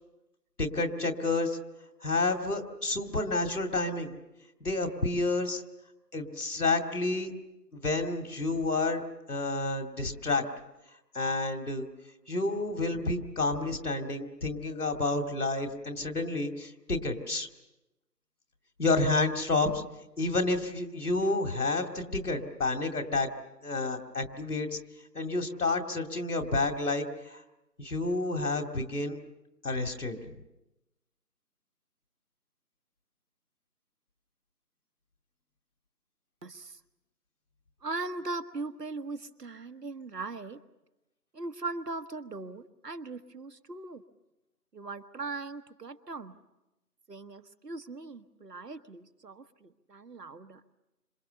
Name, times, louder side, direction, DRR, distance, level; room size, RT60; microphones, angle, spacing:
voice 1, 0.6-1.6 2.0-4.1 4.6-5.6 6.1-7.3 7.7-9.0 9.3-10.4 11.1-11.9 12.3-17.5 18.8-19.8 20.2-23.3 23.6-24.8 25.1-27.4 27.8-29.2 29.6-30.2, left 2 dB, 65° left, 6 dB, 2.6 m, -30 dB
voice 2, 36.4-36.8 37.8-40.6 41.3-44.0 44.7-46.3 47.1-50.6, right 3 dB, 75° right, 11 dB, 1.5 m, -39 dB
26.5 x 26.5 x 6.9 m, 0.96 s
figure-of-eight pair, 170°, 48 cm